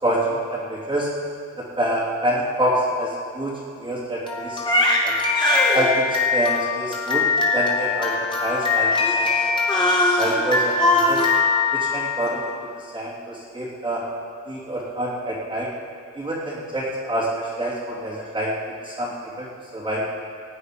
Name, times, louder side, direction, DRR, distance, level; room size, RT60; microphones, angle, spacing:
voice 1, 0.0-1.1 1.8-5.2 5.7-7.2 7.5-9.3 10.2-11.3 11.7-14.0 14.5-15.7 16.2-18.5 18.8-19.5 19.7-20.0, right 1 dB, 15° right, -7 dB, 3.1 m, -26 dB
Crying sobbing, 4.3-12.4, left 3 dB, 15° left, 3.3 m, -21 dB
18.5 x 8.7 x 5.1 m, 2.3 s
cardioid pair, 90°, 30 cm